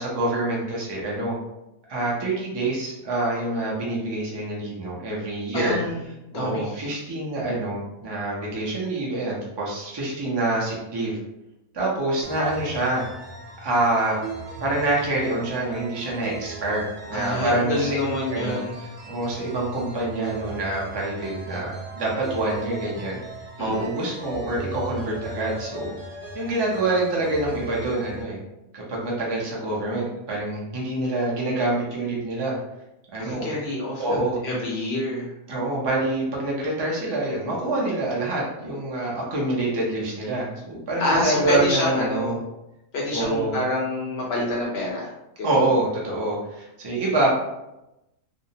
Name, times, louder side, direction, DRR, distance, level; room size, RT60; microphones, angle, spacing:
voice 1, 0.0-1.4 1.9-5.8 6.3-11.2 11.7-13.0 13.6-14.2 14.6-18.0 18.3-18.6 19.1-23.2 23.6-25.9 26.3-28.4 28.7-32.6 33.1-33.5 34.0-34.4 35.5-42.4 43.1-43.6 45.4-47.4, right 2 dB, 40° right, -4 dB, 0.3 m, -26 dB
voice 2, 5.5-6.1 6.3-6.9 17.1-18.8 23.6-23.9 33.2-35.3 41.0-42.4 42.9-45.1 45.4-45.6, left 1 dB, 65° left, -3 dB, 0.7 m, -27 dB
sound 1, 12.2-28.2, right 2 dB, 65° right, 0.8 m, -38 dB
2.6 x 2.0 x 2.7 m, 0.91 s
omnidirectional pair, 1.5 m